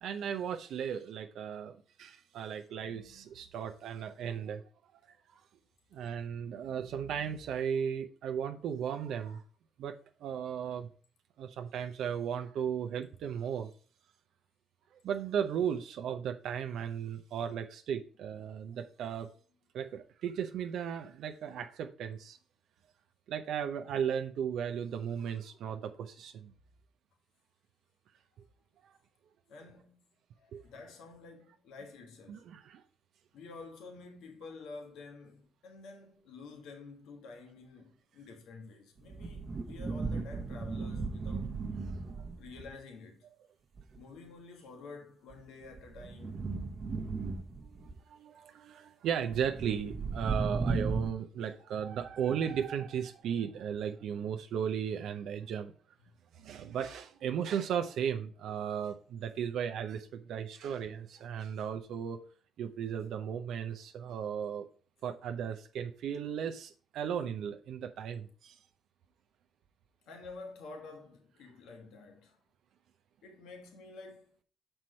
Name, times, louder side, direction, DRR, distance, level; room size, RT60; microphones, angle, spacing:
voice 1, 0.0-4.6 5.1-5.4 5.9-9.4 9.8-10.9 11.4-13.7 15.0-19.3 19.7-22.4 23.3-26.5 28.8-28.9 30.5-30.6 32.3-32.8 41.9-42.3 47.6-55.7 56.3-62.2 62.6-64.7 65.0-68.6, right 8 dB, 75° right, 0.6 m, -36 dB
voice 2, 29.5-30.0 30.4-32.4 33.3-41.5 42.4-43.2 43.9-46.5 70.1-72.4 73.2-74.4, left 3 dB, 85° left, 1.4 m, -50 dB
sound 1, 39.0-42.7 43.8-44.0 45.3-47.9 49.3-51.1, right 4 dB, 40° right, 1.0 m, -36 dB
6.1 x 4.4 x 5.2 m
cardioid pair, 90°, 0 cm